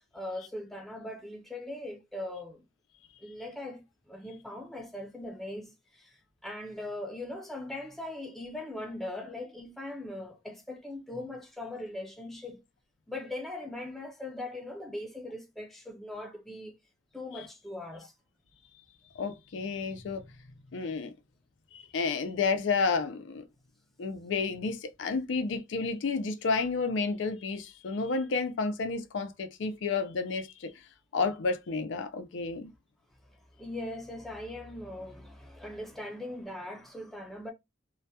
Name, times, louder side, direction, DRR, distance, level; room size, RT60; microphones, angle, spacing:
voice 1, 0.1-2.6 3.2-12.6 13.1-16.7 17.1-18.1 33.6-37.5, left 1 dB, ahead, 0.4 m, -40 dB
voice 2, 19.2-20.2 20.7-21.1 21.7-23.4 24.0-30.7 31.1-32.7, left 4 dB, 80° left, 0.4 m, -31 dB
2.2 x 2.1 x 2.7 m
head